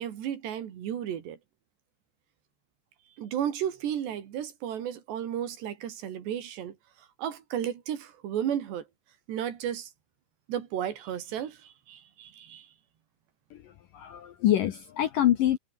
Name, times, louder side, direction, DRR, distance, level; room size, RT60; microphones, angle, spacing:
voice 1, 0.0-1.4 3.2-8.9 9.3-9.9 10.5-12.7, right 10 dB, 70° right, 4.5 m, -33 dB
voice 2, 13.5-15.6, left 12 dB, 70° left, 2.2 m, -26 dB
omnidirectional pair, 5.3 m